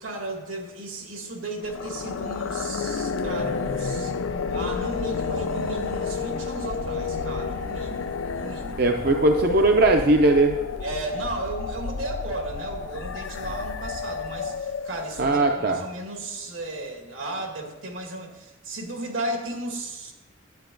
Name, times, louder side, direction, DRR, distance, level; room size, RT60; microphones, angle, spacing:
voice 1, 0.0-4.1 4.5-8.9 10.8-20.1, right 1 dB, 80° right, 2 dB, 1.9 m, -34 dB
sound 1, 1.6-15.7, left 4 dB, 80° left, 0.5 m, -31 dB
voice 2, 8.8-10.6 15.2-15.8, right 2 dB, 50° right, 4 dB, 0.5 m, -19 dB
10.5 x 8.6 x 3.9 m, 1.1 s
head